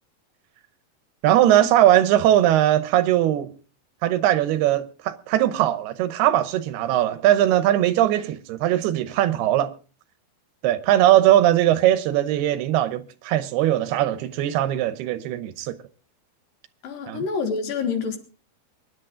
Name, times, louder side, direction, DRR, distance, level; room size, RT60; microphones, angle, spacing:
voice 1, 1.2-3.5 4.0-9.7 10.6-15.7 17.1-17.2, right 12 dB, 80° right, 2.8 m, -20 dB
voice 2, 16.8-18.2, left 5 dB, 60° left, 3.2 m, -27 dB
23.5 x 10.5 x 3.7 m
omnidirectional pair, 4.6 m